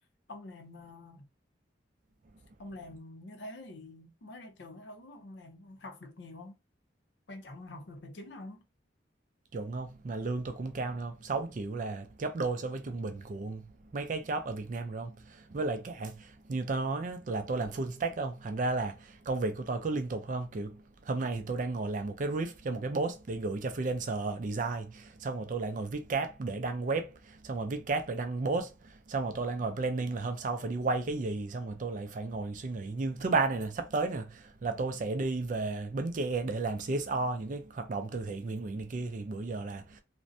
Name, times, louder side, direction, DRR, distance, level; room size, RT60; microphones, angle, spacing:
voice 1, 0.3-1.3 2.6-6.6 7.3-8.6, left 2 dB, 70° left, 0.6 m, -46 dB
voice 2, 9.5-13.6 13.9-40.0, right 3 dB, 45° right, 0.4 m, -33 dB
2.5 x 2.1 x 2.6 m
head